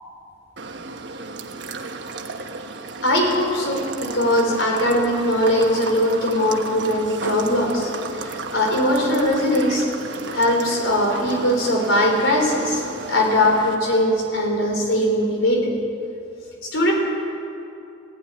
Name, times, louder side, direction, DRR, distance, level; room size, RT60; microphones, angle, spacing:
sound 1, 0.6-13.7, right 3 dB, 65° right, 1.2 m, -33 dB
voice 1, 3.0-9.9 10.3-12.8 13.1-15.7 16.6-16.9, left 1 dB, 85° left, 1 dB, 4.7 m, -20 dB
17.5 x 15.5 x 9.9 m, 2.7 s
head